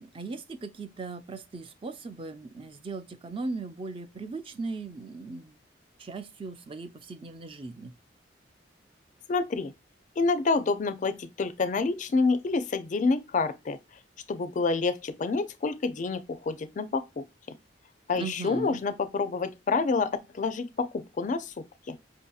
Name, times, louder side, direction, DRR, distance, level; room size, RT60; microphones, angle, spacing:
voice 1, 0.0-5.5 6.0-7.9 18.2-18.8, right 3 dB, 30° right, 0.4 m, -38 dB
voice 2, 9.3-9.7 10.2-13.8 14.3-17.6 18.1-21.5 21.9-22.0, left 4 dB, 45° left, 0.4 m, -28 dB
5.2 x 2.7 x 2.3 m
head